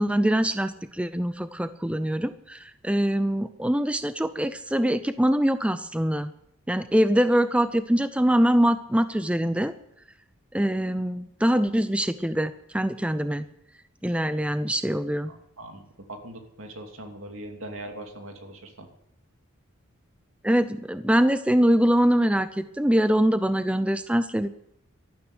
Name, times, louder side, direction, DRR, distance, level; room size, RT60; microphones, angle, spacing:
voice 1, 0.0-6.3 6.7-9.7 10.5-13.5 14.0-15.3 20.4-24.5, equal, 5° right, 12 dB, 0.5 m, -23 dB
voice 2, 15.3-15.8 16.1-18.9, right 1 dB, 70° right, 4 dB, 2.7 m, -40 dB
13.0 x 12.0 x 8.0 m, 0.77 s
head